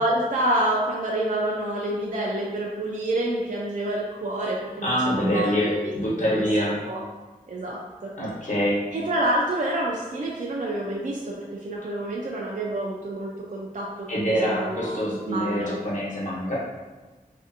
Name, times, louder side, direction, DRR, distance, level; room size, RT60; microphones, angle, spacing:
voice 1, 0.0-5.5 5.8-5.9 6.3-6.5 6.8-7.0 7.5-8.1 8.9-15.7, right 1 dB, 60° right, -3 dB, 0.4 m, -28 dB
voice 2, 4.8-6.9 8.2-8.8 14.1-16.6, equal, 55° left, -7 dB, 1.1 m, -25 dB
3.3 x 2.6 x 2.6 m, 1.2 s
wide cardioid pair, 75°, 15 cm